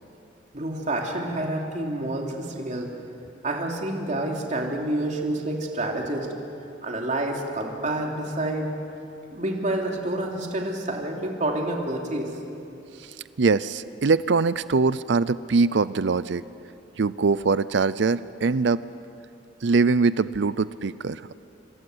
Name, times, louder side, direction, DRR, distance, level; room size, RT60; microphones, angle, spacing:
voice 1, 0.5-2.9 3.4-6.3 6.8-8.7 9.3-12.3, right 1 dB, 40° right, 0 dB, 3.1 m, -28 dB
voice 2, 13.4-16.4 17.0-18.8 19.6-21.3, right 4 dB, 65° right, 16 dB, 0.5 m, -22 dB
26.5 x 25.5 x 8.0 m, 2.6 s
head